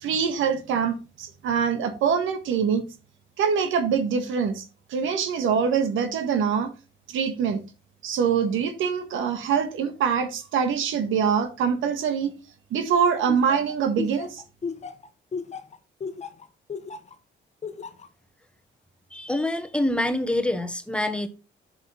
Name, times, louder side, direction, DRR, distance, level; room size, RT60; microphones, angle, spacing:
voice 1, 0.0-2.8 3.4-4.6 4.9-6.7 7.1-7.6 8.0-12.3 12.7-14.4, right 7 dB, 85° right, 1.6 m, -24 dB
Laughter, 13.3-17.1 17.6-18.1, left 5 dB, 35° left, 1.1 m, -34 dB
voice 2, 19.1-21.3, left 1 dB, 5° left, 1.1 m, -26 dB
7.6 x 6.2 x 3.9 m
cardioid pair, 90°, 20 cm